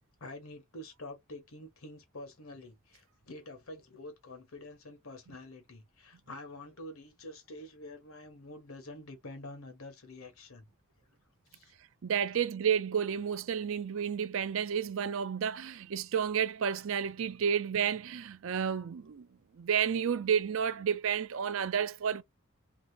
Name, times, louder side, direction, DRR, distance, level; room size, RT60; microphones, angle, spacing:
voice 1, 0.2-10.7 11.5-11.7, left 1 dB, 75° left, 1.1 m, -47 dB
voice 2, 12.0-19.3 19.6-22.2, right 7 dB, 60° right, 0.4 m, -31 dB
2.9 x 2.8 x 2.8 m
head